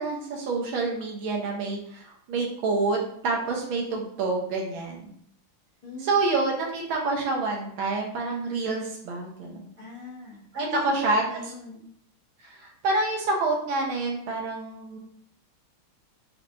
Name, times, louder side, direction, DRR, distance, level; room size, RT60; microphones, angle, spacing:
voice 1, 0.0-5.1 6.0-9.7 10.5-11.2 12.4-15.0, right 3 dB, 75° right, 0 dB, 1.5 m, -27 dB
voice 2, 9.8-11.9, left 2 dB, 20° left, -9 dB, 0.8 m, -39 dB
4.3 x 3.1 x 2.5 m, 0.67 s
omnidirectional pair, 2.3 m